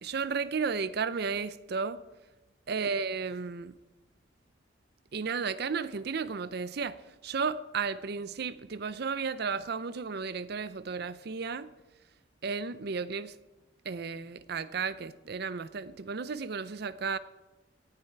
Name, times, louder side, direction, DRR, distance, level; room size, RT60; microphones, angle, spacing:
voice 1, 0.0-2.0 2.7-3.7 5.1-7.0 7.2-11.7 12.4-13.3 13.8-17.2, right 5 dB, 60° right, 0.5 m, -33 dB
17.5 x 9.1 x 4.6 m
head